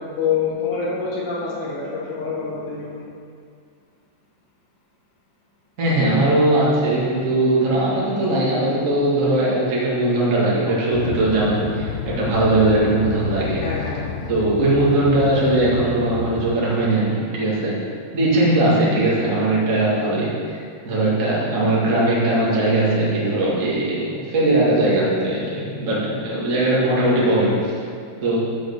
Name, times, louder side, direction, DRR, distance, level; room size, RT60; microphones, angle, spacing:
voice 1, 0.2-3.0 13.6-14.1, left 5 dB, 55° left, -6 dB, 2.6 m, -26 dB
voice 2, 5.8-13.6 14.3-17.8 18.1-20.6 20.8-27.7 28.2-28.4, right 1 dB, 85° right, -7 dB, 0.7 m, -19 dB
sound 1, 10.9-16.6, left 6 dB, 80° left, 2.0 m, -30 dB
7.9 x 6.4 x 6.6 m, 2.2 s
omnidirectional pair, 4.9 m